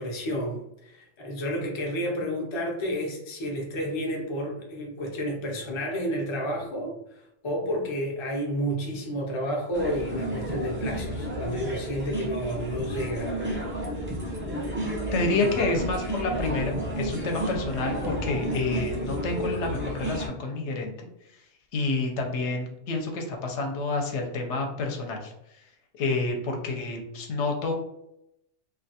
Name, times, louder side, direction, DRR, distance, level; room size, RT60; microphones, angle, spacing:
voice 1, 0.0-13.4, equal, 45° left, -1 dB, 0.4 m, -31 dB
sound 1, 9.7-20.3, equal, 15° right, 0.5 m, -31 dB
voice 2, 15.1-21.1 21.7-25.3 25.9-27.7, left 3 dB, 70° left, 2 dB, 0.8 m, -29 dB
2.4 x 2.2 x 2.7 m, 0.81 s
omnidirectional pair, 1.3 m